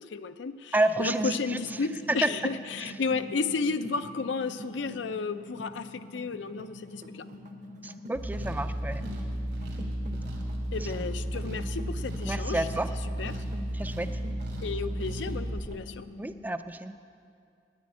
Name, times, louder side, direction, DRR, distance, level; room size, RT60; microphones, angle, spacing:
voice 1, 0.0-0.7 1.0-7.3 10.7-12.7 13.2-13.4 14.6-16.1, left 4 dB, 80° left, 11 dB, 0.5 m, -33 dB
voice 2, 0.7-1.6 2.1-2.3 7.8-9.1 10.1-10.3 10.8-10.9 12.2-12.9 13.7-14.1 16.2-17.0, right 2 dB, 10° right, 10 dB, 0.3 m, -29 dB
sound 1, 1.0-16.5, left 3 dB, 45° left, 0.9 m, -47 dB
sound 2, 1.4-15.9, right 1 dB, 45° right, 0.7 m, -48 dB
sound 3, 8.1-15.7, equal, 90° right, 2.9 m, -34 dB
10.5 x 9.5 x 9.6 m, 2.4 s
head